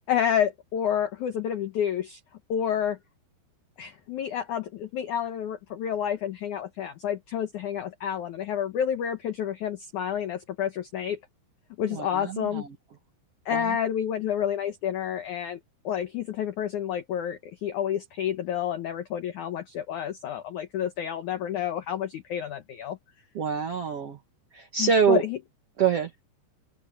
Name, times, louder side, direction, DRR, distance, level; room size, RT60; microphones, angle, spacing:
voice 1, 0.0-2.2 2.5-3.0 3.8-11.2 11.8-12.6 13.4-15.6 15.8-23.0 24.8-25.4, left 9 dB, 90° left, 1.7 m, -29 dB
voice 2, 11.9-12.7 13.5-13.6 23.3-24.2 24.5-25.2 25.8-26.1, right 6 dB, 75° right, 1.3 m, -25 dB
omnidirectional pair, 5.2 m